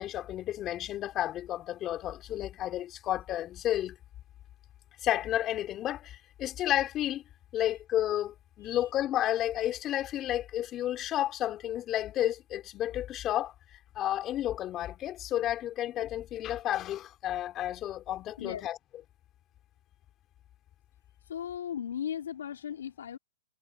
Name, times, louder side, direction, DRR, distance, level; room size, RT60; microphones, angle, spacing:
voice 1, 0.0-4.0 5.0-7.2 7.5-18.8, left 12 dB, 25° left, 4.0 m, -31 dB
voice 2, 21.3-23.2, left 9 dB, 85° left, 3.4 m, -36 dB
hypercardioid pair, 145°, 0 cm